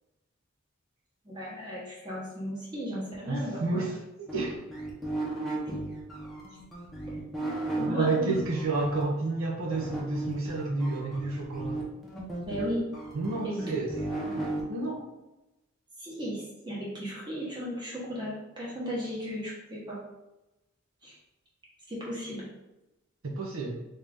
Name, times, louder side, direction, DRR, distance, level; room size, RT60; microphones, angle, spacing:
voice 1, 1.2-3.8 5.7-5.8 7.8-8.3 12.5-12.8 13.3-13.7 16.0-20.0 21.0-21.1 21.9-22.5, equal, 20° right, -6 dB, 1.1 m, -35 dB
voice 2, 3.2-4.6 7.4-7.5 7.9-11.8 13.1-13.9 14.3-15.1 23.2-23.8, right 3 dB, 75° right, -2 dB, 0.8 m, -30 dB
sound 1, 4.3-9.0 9.7-14.6, right 2 dB, ahead, 0.7 m, -35 dB
3.6 x 2.7 x 3.5 m, 0.97 s
head